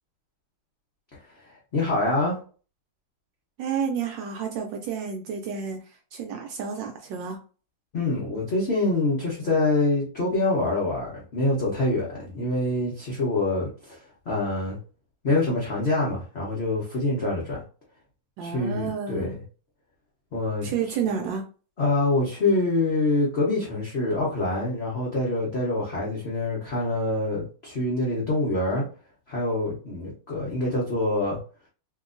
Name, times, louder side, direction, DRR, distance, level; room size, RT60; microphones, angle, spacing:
voice 1, 1.5-2.4 7.9-14.0 14.3-14.8 15.2-17.6 18.4-19.3 20.3-20.7 21.8-28.8 29.3-31.4, left 2 dB, 65° left, 0.6 m, -25 dB
voice 2, 3.6-7.4 18.4-19.4 20.6-21.4, right 7 dB, 75° right, 1.1 m, -30 dB
2.9 x 2.8 x 2.5 m
omnidirectional pair, 2.3 m